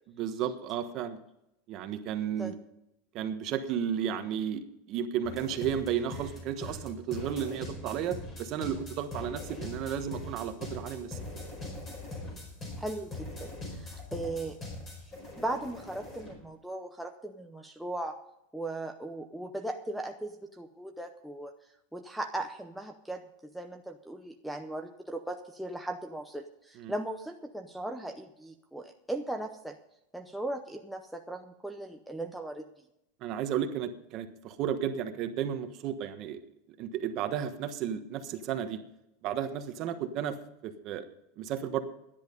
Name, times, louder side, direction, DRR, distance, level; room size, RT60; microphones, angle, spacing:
voice 1, 0.2-1.2 1.7-2.5 3.1-11.2 26.7-26.9 33.2-36.4 36.8-38.8 39.2-40.4 40.6-41.0 41.4-41.8, right 9 dB, 35° right, 7 dB, 1.2 m, -33 dB
sound 1, 5.2-16.4, left 2 dB, 20° left, 4.8 m, -42 dB
voice 2, 12.8-14.6 15.4-18.2 18.5-21.5 21.9-29.8 30.1-32.6, right 1 dB, ahead, 2 dB, 0.6 m, -38 dB
13.0 x 10.5 x 5.3 m, 0.83 s
supercardioid pair, 165°, 0 cm